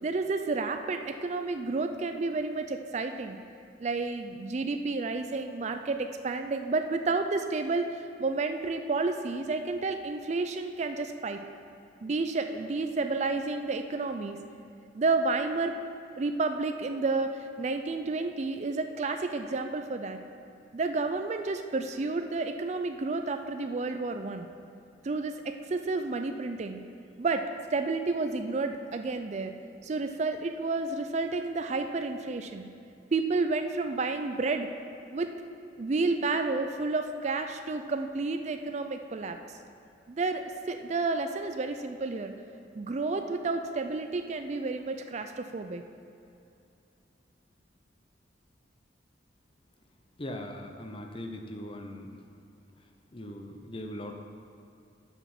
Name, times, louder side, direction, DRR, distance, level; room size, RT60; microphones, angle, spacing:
voice 1, 0.0-3.4 3.8-11.4 12.0-14.4 14.9-15.7 16.2-20.2 20.7-24.5 25.0-26.8 27.2-27.4 27.7-29.5 29.8-32.7 33.1-34.7 35.1-35.4 35.8-39.4 40.1-42.3 42.7-45.8, right 3 dB, 35° right, 7 dB, 0.4 m, -31 dB
voice 2, 50.2-52.2 53.1-54.1, left 1 dB, 30° left, 4 dB, 0.7 m, -40 dB
8.0 x 6.3 x 5.9 m, 2.6 s
head